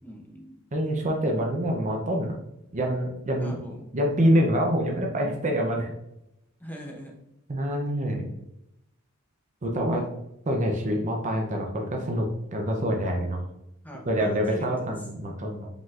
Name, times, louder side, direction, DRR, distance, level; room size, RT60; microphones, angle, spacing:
voice 1, 0.0-0.6 3.4-3.9 6.6-7.1 13.8-14.9, equal, 10° left, 0 dB, 0.7 m, -42 dB
voice 2, 0.7-2.4 2.7-3.6 3.9-5.9 7.5-8.3 9.6-10.0 10.5-13.4 14.1-15.7, equal, 35° right, 1 dB, 0.5 m, -26 dB
5.1 x 3.7 x 2.4 m, 0.85 s
head